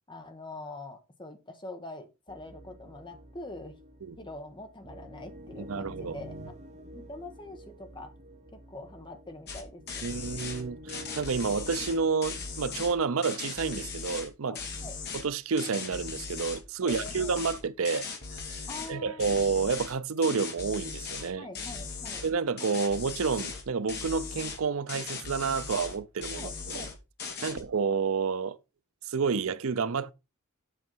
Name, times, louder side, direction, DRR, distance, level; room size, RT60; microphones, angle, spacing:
voice 1, 0.1-3.8 4.2-6.6 6.9-8.1 8.5-10.3 14.4-15.0 16.8-17.3 18.7-19.4 21.3-22.2 26.3-26.9 27.4-27.6, left 2 dB, 20° left, 1.3 m, -44 dB
sound 1, 2.3-12.1, equal, 35° right, 1.0 m, -48 dB
voice 2, 5.6-6.2 10.0-14.6 15.1-18.1 18.3-21.5 22.2-26.9 27.4-28.6 29.0-30.1, right 5 dB, 75° right, 0.6 m, -30 dB
sound 2, 9.5-9.6 9.9-10.6 10.9-12.9 13.2-14.3 14.5-15.3 15.6-16.6 16.9-18.9 19.2-19.9 20.2-21.3 21.5-22.3 22.6-23.6 23.9-24.6 24.9-26.0 26.2-26.9 27.2-27.6, left 5 dB, 50° left, 2.1 m, -38 dB
7.8 x 5.6 x 4.5 m
head